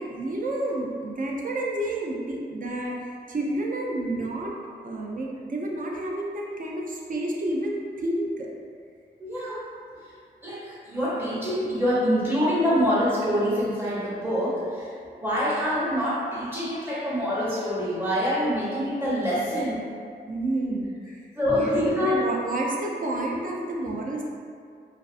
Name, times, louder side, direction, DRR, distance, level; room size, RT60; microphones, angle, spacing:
voice 1, 0.0-4.5 4.8-8.5 20.3-20.9 21.5-24.2, right 1 dB, 50° right, -2 dB, 0.4 m, -30 dB
voice 2, 9.2-9.6 10.4-14.9 15.2-19.8 21.4-22.2, equal, 10° right, -9 dB, 0.8 m, -25 dB
2.4 x 2.4 x 2.4 m, 2.2 s
wide cardioid pair, 85°, 18 cm